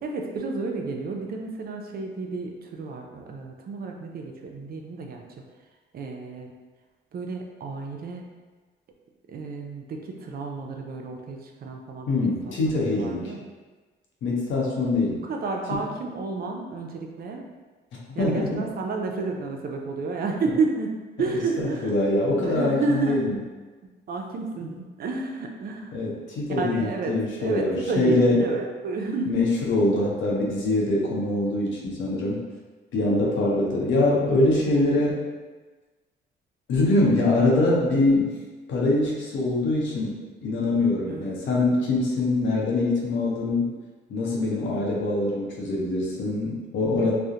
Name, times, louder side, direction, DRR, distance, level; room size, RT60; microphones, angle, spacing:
voice 1, 0.0-5.3 5.9-6.5 7.1-8.4 9.3-13.4 15.2-17.4 18.1-21.9 22.4-23.3 24.1-26.0 26.5-29.5 41.1-41.4 47.0-47.1, right 3 dB, 50° right, 2 dB, 0.4 m, -31 dB
voice 2, 12.1-13.3 14.2-15.2 18.2-18.7 21.6-23.3 25.9-28.4 29.3-32.4 32.9-35.2 36.7-38.3 38.7-40.1 40.4-43.7 44.1-47.1, left 2 dB, 75° left, -3 dB, 0.7 m, -23 dB
2.4 x 2.0 x 2.7 m, 1.3 s
cardioid pair, 90°, 20 cm